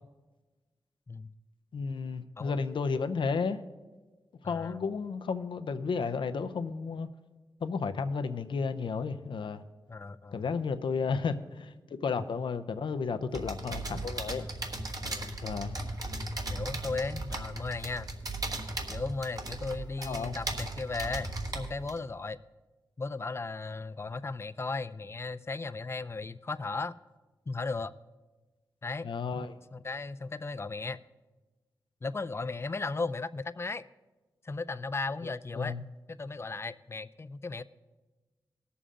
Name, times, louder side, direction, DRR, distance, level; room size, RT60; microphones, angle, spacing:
voice 1, 1.7-3.6 4.4-7.1 7.6-9.6 10.3-14.5 15.4-15.8 20.0-20.4 29.0-29.6 35.6-35.8, left 5 dB, 75° left, 0.6 m, -33 dB
voice 2, 4.4-4.8 9.9-10.4 15.0-15.3 16.5-18.1 18.9-22.4 23.0-27.0 27.5-27.9 28.8-29.1 29.7-31.0 32.0-33.8 34.4-37.6, left 3 dB, 30° left, 0.4 m, -36 dB
sound 1, 13.3-22.0, right 2 dB, 45° right, 1.4 m, -37 dB
18.5 x 7.0 x 3.7 m
cardioid pair, 70°, 8 cm